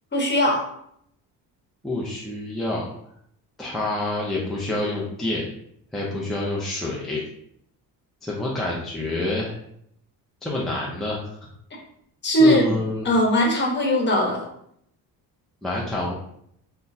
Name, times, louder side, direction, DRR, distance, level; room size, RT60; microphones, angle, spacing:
voice 1, 0.1-0.7 12.2-12.7 13.0-14.4, equal, 30° left, 0 dB, 1.1 m, -19 dB
voice 2, 1.8-2.9 3.6-5.4 5.9-7.2 8.2-9.6 10.4-11.2 12.4-13.1 15.6-16.1, left 2 dB, ahead, -5 dB, 0.5 m, -27 dB
5.8 x 2.2 x 2.7 m, 0.71 s
cardioid pair, 135°, 37 cm